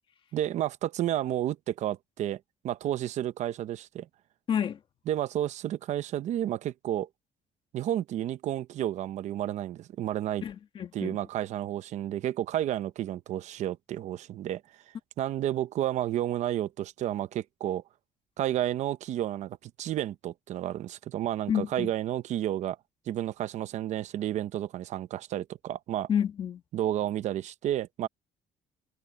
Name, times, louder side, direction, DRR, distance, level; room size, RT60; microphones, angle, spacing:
voice 1, 0.3-4.1 5.1-7.1 7.7-10.4 10.9-14.6 15.2-17.8 18.4-22.8 23.1-26.1 26.7-28.1, right 12 dB, 55° right, 0.8 m, -31 dB
voice 2, 4.5-4.8 10.4-11.2 21.5-21.9 26.1-26.6, left 8 dB, 35° left, 1.6 m, -29 dB
cardioid pair, 180°, 14 cm